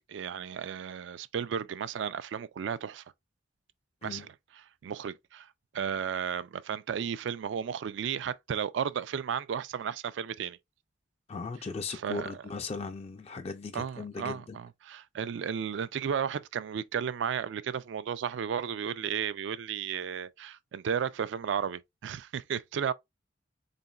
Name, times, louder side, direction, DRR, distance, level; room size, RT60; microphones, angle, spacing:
voice 1, 0.1-3.0 4.0-5.5 5.7-10.6 11.9-12.3 13.7-22.9, right 7 dB, 70° right, 0.3 m, -34 dB
voice 2, 11.3-14.6, left 4 dB, 35° left, 0.4 m, -38 dB
4.0 x 3.7 x 2.3 m
head